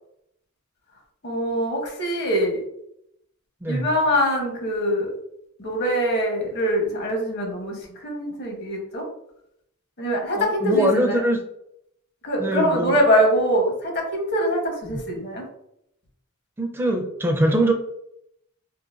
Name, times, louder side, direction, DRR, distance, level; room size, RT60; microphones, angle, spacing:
voice 1, 1.2-2.6 3.7-5.1 5.6-9.0 10.0-11.2 12.2-15.4, equal, 55° left, 1 dB, 1.0 m, -23 dB
voice 2, 10.3-11.4 12.4-13.0 14.8-15.0 16.6-17.7, right 1 dB, 10° right, 2 dB, 0.4 m, -22 dB
3.8 x 2.5 x 2.4 m, 0.77 s
head